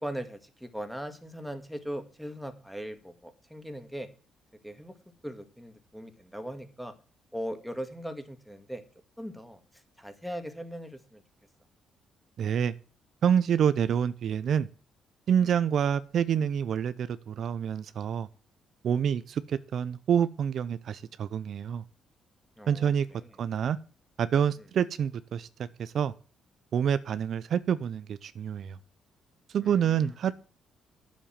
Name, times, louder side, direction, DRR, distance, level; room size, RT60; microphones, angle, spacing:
voice 1, 0.0-4.1 4.6-4.9 5.2-6.9 7.3-8.8 9.2-11.2 15.4-15.5 22.6-23.3 29.6-30.1, equal, ahead, 2.0 m, -39 dB
voice 2, 12.4-12.7 13.2-14.7 15.3-18.3 18.8-21.8 22.7-23.1 23.4-23.8 24.2-25.5 25.8-26.1 26.7-28.8 29.5-30.3, right 8 dB, 60° right, 0.6 m, -27 dB
10.0 x 7.3 x 7.3 m
cardioid pair, 90°, 0 cm